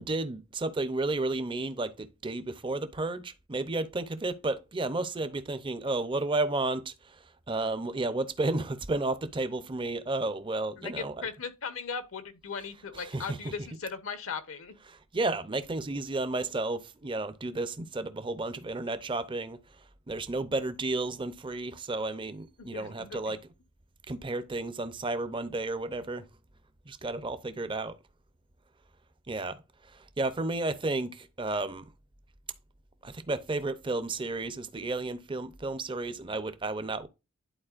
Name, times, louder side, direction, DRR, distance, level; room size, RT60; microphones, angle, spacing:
voice 1, 0.0-11.1 12.9-13.5 14.9-23.4 24.1-26.2 26.9-28.0 29.3-31.9 33.0-37.1, right 2 dB, 25° right, 0.5 m, -32 dB
voice 2, 10.8-14.7 22.6-23.3, left 5 dB, 70° left, 0.9 m, -38 dB
11.0 x 4.2 x 2.4 m
head